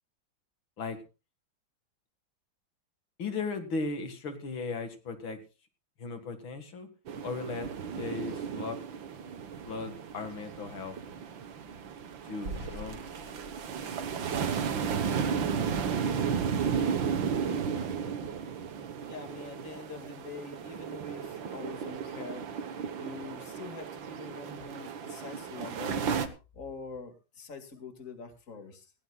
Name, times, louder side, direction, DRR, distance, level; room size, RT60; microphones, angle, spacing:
voice 1, 3.2-5.4 6.0-6.9 7.2-8.8 9.6-11.0 12.2-13.0, left 4 dB, 90° left, 7 dB, 2.8 m, -37 dB
sound 1, 7.1-26.3, right 6 dB, 75° right, 2.0 m, -34 dB
sound 2, 12.5-15.4, right 2 dB, 55° right, 4.5 m, -45 dB
voice 2, 19.1-22.5 23.0-26.2 26.5-28.9, left 4 dB, 40° left, 6 dB, 2.5 m, -44 dB
19.5 x 16.0 x 2.4 m, 0.30 s
omnidirectional pair, 2.1 m